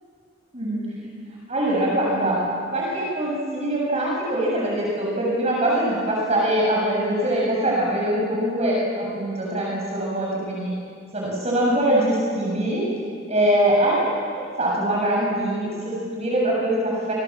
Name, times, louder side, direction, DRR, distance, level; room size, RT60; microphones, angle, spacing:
voice 1, 1.5-2.4 2.7-10.7 11.1-12.8 13.3-17.1, right 1 dB, 35° right, -4 dB, 7.2 m, -23 dB
27.5 x 25.5 x 7.5 m, 2.2 s
head